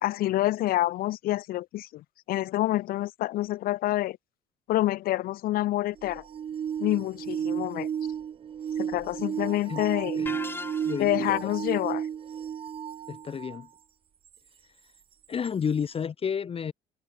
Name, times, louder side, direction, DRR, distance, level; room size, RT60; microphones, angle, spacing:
voice 1, 0.0-4.2 4.7-6.2 6.8-7.9 8.8-10.2 11.0-12.1, left 15 dB, 60° left, 0.7 m, -27 dB
sound 1, 6.0-13.6 14.3-14.4 15.4-15.5, right 8 dB, 35° right, 0.5 m, -33 dB
sound 2, 10.3-11.3, left 3 dB, 15° left, 0.6 m, -38 dB
voice 2, 10.8-11.4 13.1-13.7 15.3-16.7, left 7 dB, 35° left, 0.9 m, -31 dB
supercardioid pair, 75°, 17 cm